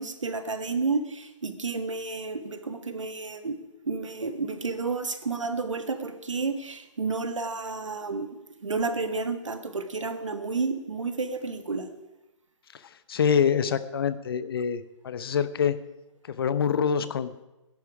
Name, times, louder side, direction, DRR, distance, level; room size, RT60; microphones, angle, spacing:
voice 1, 0.0-3.6 3.9-8.3 8.6-11.9, right 4 dB, 75° right, 8 dB, 1.7 m, -31 dB
voice 2, 13.1-15.8 16.4-17.3, left 7 dB, 50° left, 13 dB, 0.9 m, -25 dB
18.5 x 11.0 x 4.8 m, 0.99 s
figure-of-eight pair, 140°, 16 cm